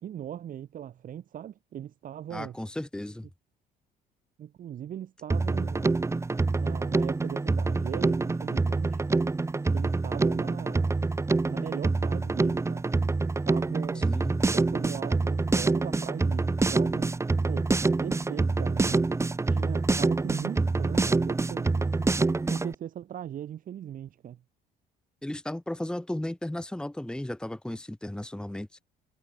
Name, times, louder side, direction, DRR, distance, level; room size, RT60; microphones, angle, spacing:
voice 1, 0.0-2.6 4.4-6.0 6.6-9.0 9.7-11.0 11.5-12.9 13.4-14.1 14.4-17.1 17.5-17.7 18.0-19.1 19.5-22.1 22.5-24.4, right 10 dB, 55° right, 2.1 m, -39 dB
voice 2, 2.3-3.3 14.0-14.4 25.2-28.7, left 1 dB, 5° left, 1.8 m, -35 dB
Drum kit, 5.3-22.7, right 3 dB, 15° right, 1.4 m, -26 dB
cardioid pair, 110°, 17 cm